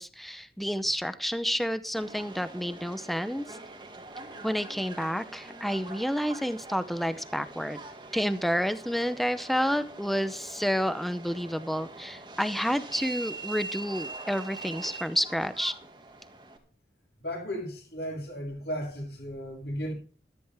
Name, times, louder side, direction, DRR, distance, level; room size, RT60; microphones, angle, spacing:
voice 1, 0.0-3.6 4.4-7.8 8.1-15.7, equal, ahead, 0.7 m, -30 dB
Subway metro underground, 2.0-16.6, right 3 dB, 25° right, 2.1 m, -43 dB
voice 2, 17.2-19.9, equal, 70° left, 7.9 m, -35 dB
14.0 x 14.0 x 3.5 m
head